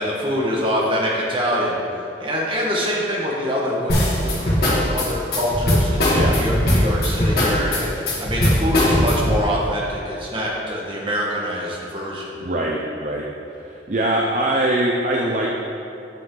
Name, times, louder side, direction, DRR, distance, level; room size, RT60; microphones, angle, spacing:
voice 1, 0.0-1.8 2.2-3.9 4.2-12.4, equal, 30° right, -4 dB, 1.5 m, -25 dB
sound 1, 3.9-9.4, left 1 dB, 60° left, 1.9 m, -19 dB
voice 2, 12.4-13.2 13.5-15.5, right 1 dB, 45° right, -2 dB, 0.6 m, -22 dB
8.7 x 7.5 x 3.9 m, 2.9 s
head